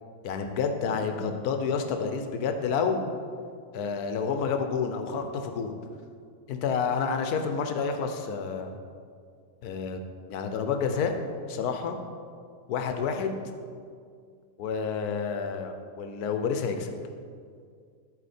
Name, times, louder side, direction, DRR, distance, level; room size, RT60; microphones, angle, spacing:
voice 1, 0.2-3.1 3.7-5.7 6.5-8.7 9.6-10.0 10.3-11.1 11.5-12.0 12.7-13.3 14.6-16.9, left 5 dB, 75° left, 6 dB, 1.2 m, -29 dB
11.0 x 4.5 x 4.2 m, 2.2 s
omnidirectional pair, 1.7 m